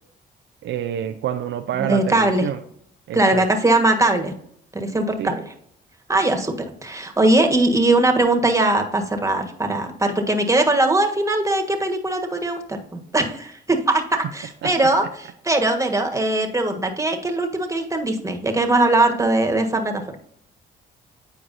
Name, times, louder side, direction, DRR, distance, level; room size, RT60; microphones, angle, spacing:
voice 1, 0.6-2.6 3.1-3.4 5.2-5.3 14.6-14.7, right 10 dB, 70° right, 8 dB, 0.5 m, -27 dB
voice 2, 1.8-2.5 3.1-4.3 4.7-5.4 6.1-20.0, right 2 dB, 15° right, 4 dB, 1.5 m, -20 dB
8.9 x 4.7 x 2.7 m, 0.67 s
supercardioid pair, 60°, 20 cm